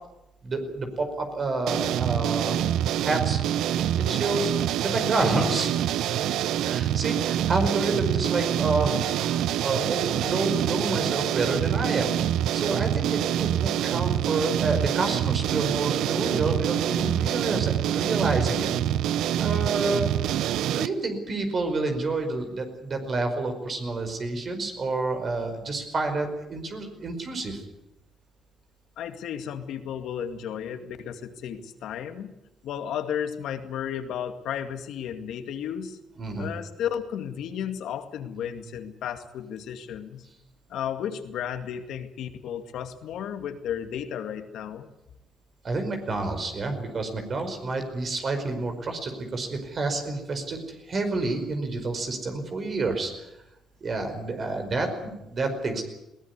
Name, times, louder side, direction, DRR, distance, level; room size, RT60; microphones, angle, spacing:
voice 1, 0.4-2.6 3.1-3.4 4.0-5.7 6.6-12.1 12.5-18.7 19.4-20.1 20.7-27.6 36.2-36.5 45.6-53.3 53.8-55.8, right 3 dB, 45° right, 6 dB, 5.0 m, -29 dB
sound 1, 1.7-20.9, right 11 dB, 85° right, 0.7 m, -26 dB
voice 2, 29.0-32.3 32.6-36.0 36.4-40.3 40.7-44.9, left 9 dB, 80° left, 8 dB, 2.2 m, -33 dB
21.0 x 17.5 x 9.7 m, 0.91 s
cardioid pair, 90°, 0 cm